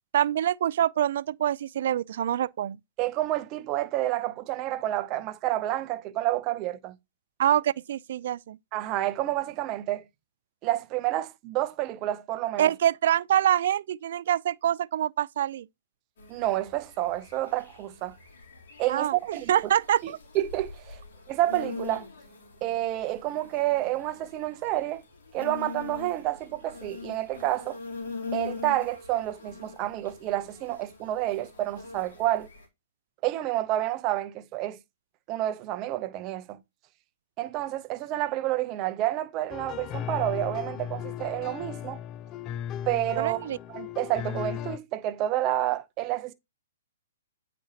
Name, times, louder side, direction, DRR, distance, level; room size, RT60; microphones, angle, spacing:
voice 1, 0.1-2.8 7.4-8.6 12.6-15.7 18.9-20.2 43.2-43.6, right 11 dB, 60° right, 0.3 m, -25 dB
voice 2, 3.0-7.0 8.7-10.0 10.6-12.7 16.3-18.2 18.8-19.5 20.0-21.0 21.3-22.1 22.6-25.0 25.3-27.8 28.3-32.5 33.2-34.8 35.3-36.6 37.4-42.0 42.9-46.3, right 14 dB, 30° right, 0.7 m, -29 dB
sound 1, 16.2-32.7, left 4 dB, 65° left, 3.2 m, -43 dB
sound 2, 39.5-44.8, left 10 dB, 25° left, 0.3 m, -36 dB
8.7 x 5.1 x 2.8 m
hypercardioid pair, 140°, 0 cm